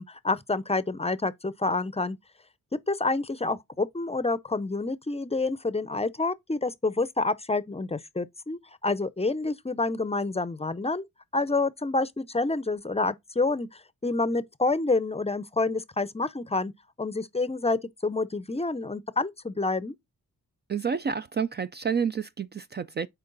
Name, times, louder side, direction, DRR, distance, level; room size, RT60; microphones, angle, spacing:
voice 1, 0.0-2.2 2.9-11.0 11.3-16.7 17.0-19.9, left 3 dB, 20° left, 0.6 m, -28 dB
voice 2, 20.7-23.1, right 6 dB, 30° right, 0.4 m, -29 dB
6.6 x 4.5 x 3.9 m
cardioid pair, 55°, 34 cm